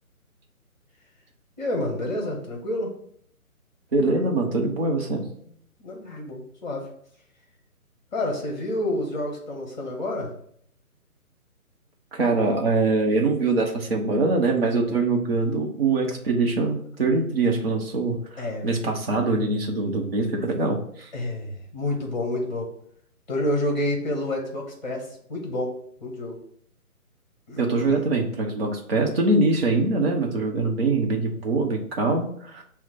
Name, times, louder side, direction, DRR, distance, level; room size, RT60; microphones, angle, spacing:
voice 1, 1.6-2.9 5.8-6.8 8.1-10.3 18.4-18.7 21.1-22.7 23.3-26.4 27.5-28.0, left 1 dB, 30° left, 1 dB, 1.0 m, -29 dB
voice 2, 3.9-5.3 12.1-21.1 27.6-32.6, right 3 dB, 45° right, 0 dB, 0.7 m, -23 dB
5.9 x 2.1 x 4.1 m, 0.64 s
figure-of-eight pair, 150°, 44 cm